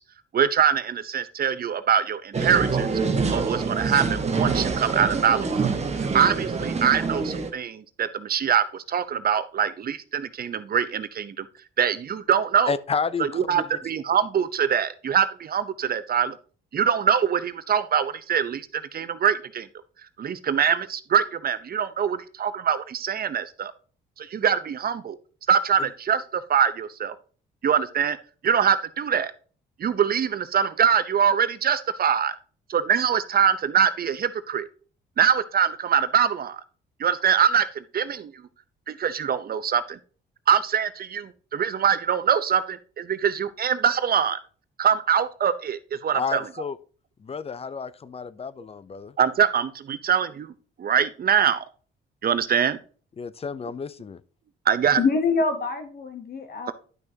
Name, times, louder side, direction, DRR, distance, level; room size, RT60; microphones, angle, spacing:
voice 1, 0.3-2.9 3.3-5.7 6.0-11.5 11.8-12.7 13.3-16.3 16.7-19.7 20.2-23.7 24.2-25.2 25.5-27.1 27.6-28.2 28.4-29.3 29.8-32.3 32.7-34.7 35.2-36.6 37.0-38.3 38.9-40.0 40.5-44.4 44.8-46.5 49.2-50.5 50.8-51.6 52.2-52.8 54.7-55.0, right 8 dB, 50° right, 0.8 m, -23 dB
sound 1, 2.3-7.5, right 4 dB, 35° right, 1.4 m, -26 dB
voice 2, 12.7-13.6 46.1-46.8 47.2-49.1 53.2-54.2, left 5 dB, 30° left, 0.6 m, -31 dB
voice 3, 55.0-56.7, left 4 dB, 50° left, 1.1 m, -25 dB
10.5 x 6.2 x 2.8 m
cardioid pair, 90°, 20 cm